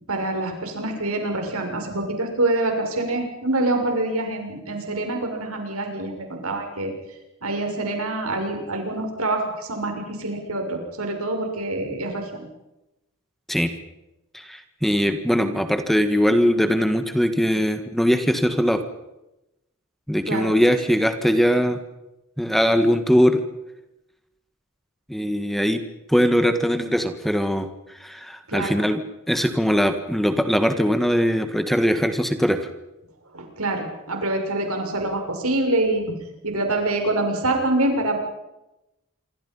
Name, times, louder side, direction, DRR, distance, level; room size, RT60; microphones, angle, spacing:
voice 1, 0.1-6.9 7.4-9.4 9.7-12.4 20.3-20.5 28.5-28.8 33.3-36.0 36.4-38.2, right 2 dB, 80° right, 3 dB, 6.6 m, -25 dB
voice 2, 14.3-18.8 20.1-21.8 22.4-23.4 25.1-25.8 26.1-27.7 28.0-29.0 29.3-32.7, equal, ahead, 8 dB, 1.6 m, -21 dB
27.5 x 25.5 x 5.6 m, 0.93 s
head